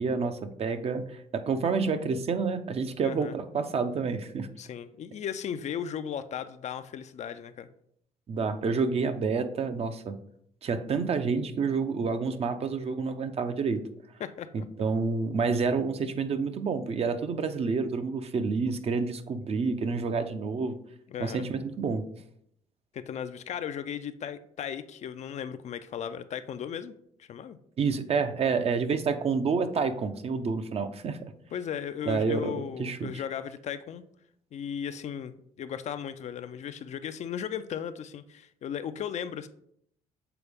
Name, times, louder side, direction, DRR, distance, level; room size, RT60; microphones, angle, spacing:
voice 1, 0.0-4.5 8.3-10.2 10.6-13.8 14.8-20.8 21.2-22.1 27.8-31.2 32.0-33.1, right 5 dB, 45° right, 9 dB, 0.6 m, -29 dB
voice 2, 3.0-3.4 4.6-7.7 14.2-14.9 21.1-21.5 22.9-27.6 31.5-34.0 34.5-39.5, left 8 dB, 50° left, 11 dB, 0.4 m, -36 dB
6.9 x 3.9 x 3.4 m, 0.71 s
cardioid pair, 90°, 15 cm